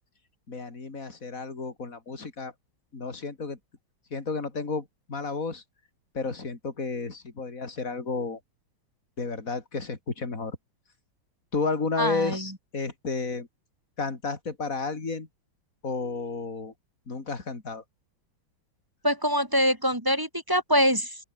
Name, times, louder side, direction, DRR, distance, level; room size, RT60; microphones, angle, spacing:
voice 1, 0.5-2.5 2.9-3.6 4.1-5.6 6.1-8.4 9.2-10.6 11.5-13.5 14.0-15.3 15.8-16.7 17.1-17.8, left 4 dB, 40° left, 3.9 m, -32 dB
voice 2, 12.0-12.5 19.0-21.2, equal, 10° right, 2.3 m, -24 dB
open air
omnidirectional pair, 2.2 m